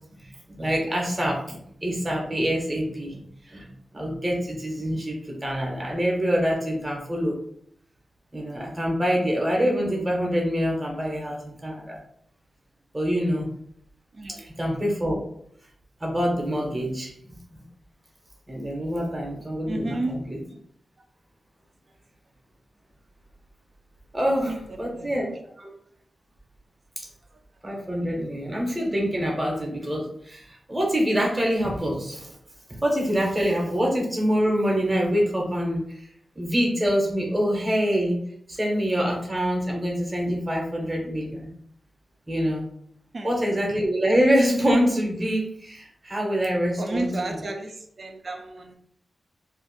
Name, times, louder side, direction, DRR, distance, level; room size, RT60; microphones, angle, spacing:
voice 1, 0.6-3.2 3.5-7.4 8.3-12.0 12.9-13.5 14.6-15.2 16.0-17.1 17.5-17.6 18.5-20.2 24.1-24.5 24.8-25.3 25.6-25.7 27.0-27.1 27.6-32.3 32.8-35.8 36.4-38.2 38.5-41.5 42.3-42.6 43.2-47.1, equal, 15° right, -2 dB, 0.8 m, -25 dB
voice 2, 14.1-14.5 19.3-19.4 19.6-20.2 21.0-21.1 24.4-25.4 27.3-27.4 43.1-43.4 46.8-48.7, right 2 dB, 40° right, 4 dB, 0.4 m, -33 dB
2.5 x 2.4 x 3.8 m, 0.68 s
wide cardioid pair, 155°, 0 cm